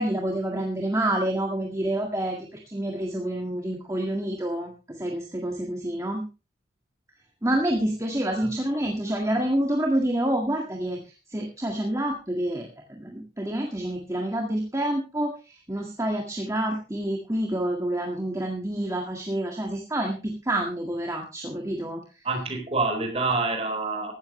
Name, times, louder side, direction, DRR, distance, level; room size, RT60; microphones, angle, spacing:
voice 1, 0.0-6.3 7.4-11.0 11.3-22.0, right 1 dB, 15° right, 1 dB, 1.8 m, -28 dB
voice 2, 22.2-24.1, right 3 dB, 30° right, 4 dB, 4.4 m, -27 dB
16.0 x 13.0 x 3.2 m, 0.32 s
head